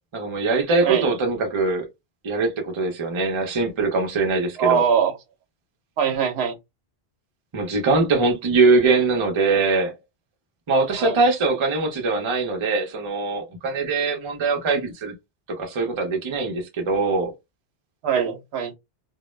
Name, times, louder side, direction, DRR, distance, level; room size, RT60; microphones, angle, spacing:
voice 1, 0.1-1.9 2.2-4.8 7.5-9.9 10.7-15.2 15.5-17.3, right 3 dB, 35° right, 0.5 m, -22 dB
voice 2, 4.6-5.1 6.0-6.6 11.0-11.2 18.0-18.7, right 7 dB, 75° right, 0.8 m, -22 dB
2.1 x 2.0 x 3.1 m
omnidirectional pair, 1.1 m